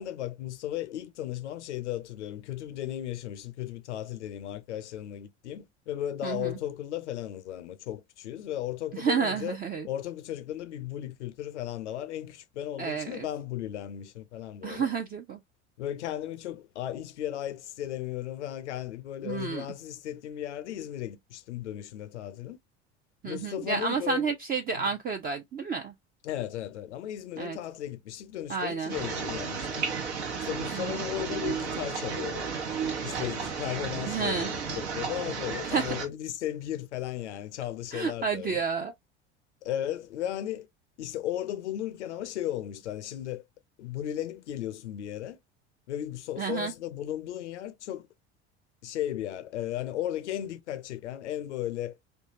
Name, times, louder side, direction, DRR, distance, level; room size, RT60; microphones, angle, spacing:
voice 1, 0.0-9.6 9.8-14.9 15.8-22.6 23.2-24.3 24.7-24.9 26.2-29.9 30.4-32.5 33.0-38.6 39.6-40.7 41.0-43.4 43.8-45.4 45.9-48.1 48.8-52.0, left 12 dB, 90° left, 0.5 m, -35 dB
voice 2, 6.2-6.6 8.9-9.9 12.8-13.3 14.6-15.4 19.2-19.7 23.2-25.9 27.4-27.6 28.5-28.9 30.7-31.1 34.1-34.5 35.6-35.9 37.9-38.9 46.4-46.7, right 5 dB, 25° right, 0.5 m, -30 dB
sound 1, 28.9-36.1, right 5 dB, 75° right, 1.1 m, -33 dB
3.2 x 2.3 x 2.6 m
hypercardioid pair, 75°, 34 cm